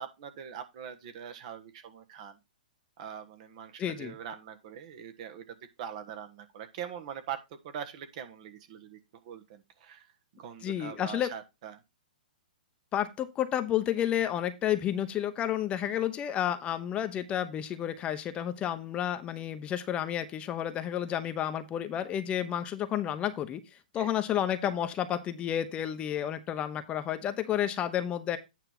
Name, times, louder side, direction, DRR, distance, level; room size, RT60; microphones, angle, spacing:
voice 1, 0.0-2.4 3.0-9.0 9.2-10.0 10.3-11.8 23.9-24.1, right 8 dB, 50° right, 1.3 m, -42 dB
voice 2, 3.8-4.2 10.6-11.3 12.9-23.6 23.9-28.4, left 10 dB, 25° left, 0.8 m, -31 dB
9.0 x 3.4 x 6.0 m
hypercardioid pair, 125°, 5 cm